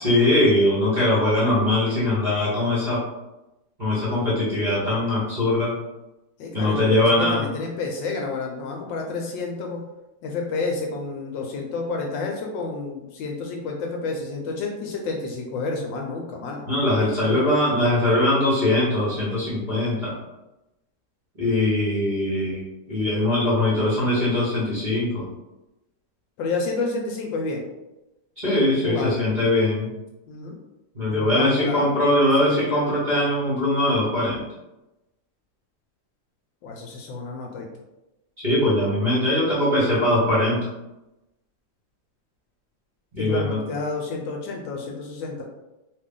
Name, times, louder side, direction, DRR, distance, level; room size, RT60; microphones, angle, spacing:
voice 1, 0.0-3.0 3.8-5.7 6.5-7.4 16.7-20.1 21.4-25.3 28.4-29.9 30.9-34.4 38.4-40.7 43.1-43.6, left 1 dB, 35° right, -9 dB, 0.8 m, -21 dB
voice 2, 6.4-9.8 10.2-16.6 17.2-17.4 26.4-27.6 28.7-29.3 30.3-30.6 31.1-32.7 36.6-37.7 43.2-45.4, left 3 dB, 75° left, 1 dB, 1.2 m, -30 dB
3.2 x 2.4 x 3.6 m, 0.98 s
omnidirectional pair, 2.2 m